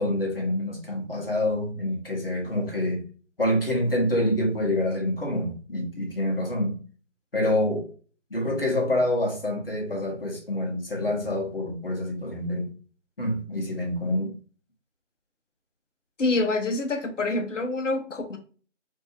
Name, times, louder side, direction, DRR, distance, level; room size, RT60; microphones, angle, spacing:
voice 1, 0.0-3.0 3.4-6.7 7.3-7.9 8.3-12.7 13.2-14.3, left 1 dB, 50° left, 1.1 m, -26 dB
voice 2, 16.2-18.4, left 2 dB, 75° left, 0.8 m, -26 dB
3.4 x 2.7 x 2.5 m
figure-of-eight pair, 170°, 37 cm